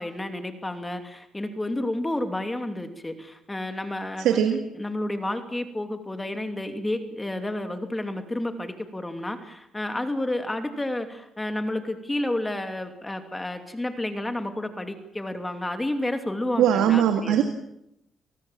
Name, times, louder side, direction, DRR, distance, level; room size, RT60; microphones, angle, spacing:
voice 1, 0.0-17.4, left 1 dB, 15° left, 7 dB, 2.8 m, -31 dB
voice 2, 4.2-4.6 16.6-17.4, right 9 dB, 90° right, 7 dB, 2.0 m, -20 dB
28.0 x 19.5 x 7.4 m, 0.79 s
cardioid pair, 90°, 0 cm